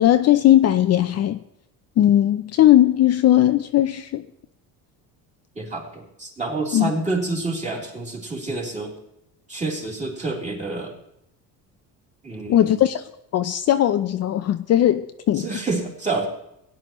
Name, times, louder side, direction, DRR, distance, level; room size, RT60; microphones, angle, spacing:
voice 1, 0.0-1.4 2.0-4.2 6.7-6.9 12.5-13.0 13.3-15.5, left 12 dB, 45° left, 0.5 m, -18 dB
voice 2, 5.6-8.9 9.5-11.0 12.2-12.8 15.4-16.3, right 2 dB, 20° right, 3.2 m, -28 dB
17.0 x 10.5 x 3.1 m
cardioid pair, 125°, 36 cm